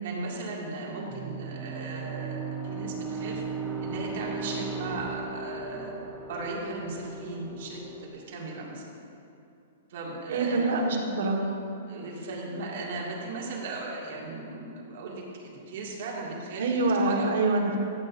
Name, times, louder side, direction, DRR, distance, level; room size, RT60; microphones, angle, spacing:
voice 1, 0.0-3.4 3.8-5.9 6.3-8.8 9.9-10.7 11.9-17.3, right 2 dB, 55° right, -3 dB, 2.1 m, -37 dB
sound 1, 1.1-8.1, right 4 dB, 20° right, 0.9 m, -37 dB
voice 2, 10.3-11.5 16.6-17.8, right 2 dB, 70° right, 1 dB, 1.5 m, -25 dB
14.0 x 8.8 x 2.6 m, 2.7 s
hypercardioid pair, 160°, 0 cm